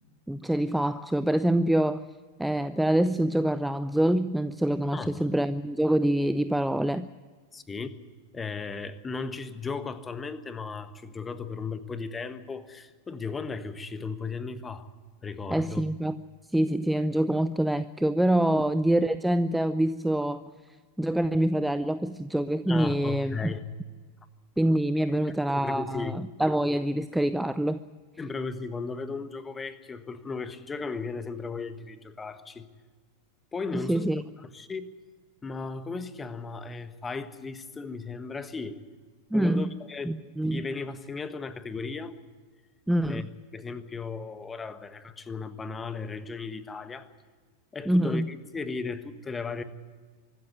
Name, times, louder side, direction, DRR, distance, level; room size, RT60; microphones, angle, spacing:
voice 1, 0.3-2.1 2.4-7.1 15.5-16.2 16.5-20.4 21.0-23.5 24.6-27.8 33.7-34.2 39.3-39.7 40.1-40.7 42.9-43.2 47.9-48.3, right 1 dB, 5° right, 14 dB, 0.5 m, -25 dB
voice 2, 4.9-5.3 7.5-7.9 8.3-14.9 15.2-15.8 18.5-18.6 22.7-23.6 25.1-26.2 28.2-32.7 33.5-34.2 34.5-34.9 35.4-38.8 39.3-40.2 40.5-42.1 43.1-47.1 47.7-49.6, left 4 dB, 15° left, 12 dB, 1.4 m, -36 dB
24.5 x 13.5 x 9.1 m, 1.5 s
figure-of-eight pair, 90°, 0 cm